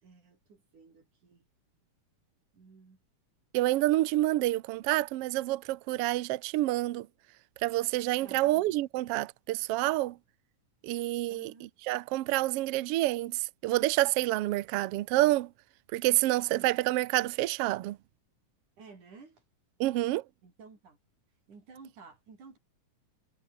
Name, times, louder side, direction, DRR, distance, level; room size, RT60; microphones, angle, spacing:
voice 1, 0.0-1.4 2.5-3.0 8.2-8.8 11.3-11.7 16.5-16.8 18.8-19.4 20.4-21.0 21.5-22.6, right 4 dB, 70° right, 7.0 m, -53 dB
voice 2, 3.5-7.1 7.6-10.2 10.8-15.5 15.9-18.0 19.8-20.2, right 17 dB, 85° right, 1.3 m, -28 dB
omnidirectional pair, 3.7 m